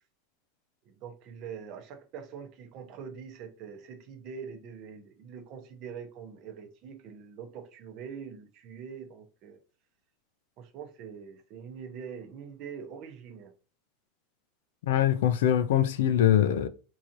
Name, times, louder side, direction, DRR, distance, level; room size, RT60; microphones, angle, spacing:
voice 1, 0.8-9.6 10.6-13.5, right 6 dB, 35° right, 0.7 m, -44 dB
voice 2, 14.8-16.7, left 11 dB, 75° left, 0.5 m, -23 dB
4.7 x 2.8 x 2.6 m
supercardioid pair, 180°, 0 cm